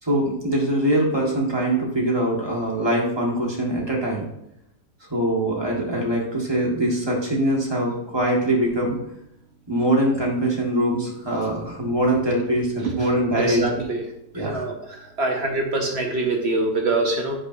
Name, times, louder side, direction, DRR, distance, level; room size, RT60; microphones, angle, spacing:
voice 1, 0.0-4.3 5.1-9.0 9.7-13.6 14.3-14.7, right 1 dB, 15° right, -4 dB, 1.6 m, -23 dB
voice 2, 13.4-14.0 14.3-14.7 15.2-17.4, right 2 dB, 50° right, 2 dB, 0.9 m, -24 dB
8.5 x 6.3 x 2.7 m, 0.80 s
omnidirectional pair, 1.8 m